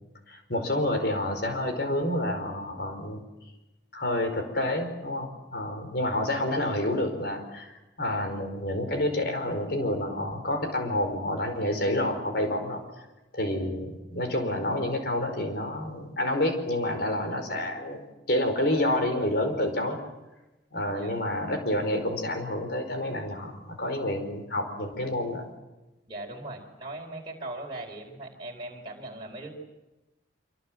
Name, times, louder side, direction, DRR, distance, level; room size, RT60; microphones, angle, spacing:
voice 1, 0.3-3.2 3.9-7.7 8.0-12.8 13.3-20.0 20.7-25.4, left 1 dB, 60° left, 6 dB, 5.0 m, -29 dB
voice 2, 26.1-29.5, right 2 dB, 25° right, -2 dB, 4.5 m, -39 dB
25.5 x 25.0 x 7.7 m, 1.0 s
head